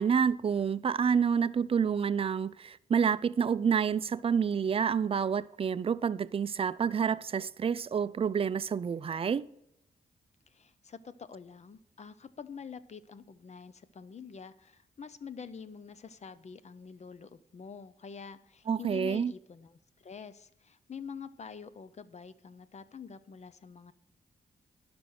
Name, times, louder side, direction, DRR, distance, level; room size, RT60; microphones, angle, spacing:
voice 1, 0.0-9.4 18.7-19.3, right 7 dB, 40° right, 0.4 m, -28 dB
voice 2, 10.5-23.9, left 6 dB, 45° left, 0.7 m, -46 dB
10.0 x 6.0 x 6.3 m
cardioid pair, 75°, 16 cm